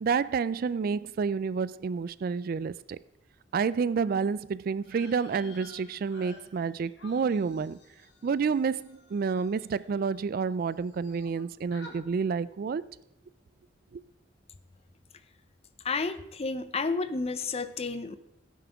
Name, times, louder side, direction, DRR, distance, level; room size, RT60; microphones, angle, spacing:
voice 1, 0.0-3.0 3.5-7.8 8.2-12.8 13.9-14.0, right 5 dB, 55° right, 0.3 m, -29 dB
sound 1, 4.8-10.4 10.7-11.4 11.7-12.0, left 3 dB, 70° left, 2.1 m, -53 dB
voice 2, 15.8-18.2, left 4 dB, 35° left, 0.6 m, -31 dB
16.0 x 9.3 x 3.5 m
head